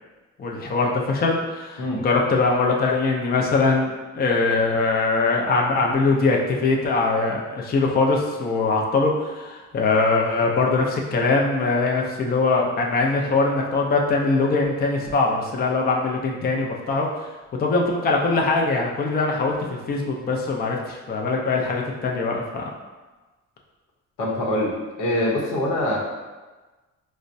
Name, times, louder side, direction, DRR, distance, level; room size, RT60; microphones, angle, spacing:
voice 1, 0.4-3.9 4.1-17.1 17.6-22.7, left 3 dB, 30° left, 0 dB, 0.4 m, -22 dB
voice 2, 24.2-24.7 25.0-26.0, left 1 dB, 90° left, -4 dB, 0.8 m, -23 dB
4.3 x 2.1 x 2.6 m, 1.2 s
cardioid pair, 90°, 30 cm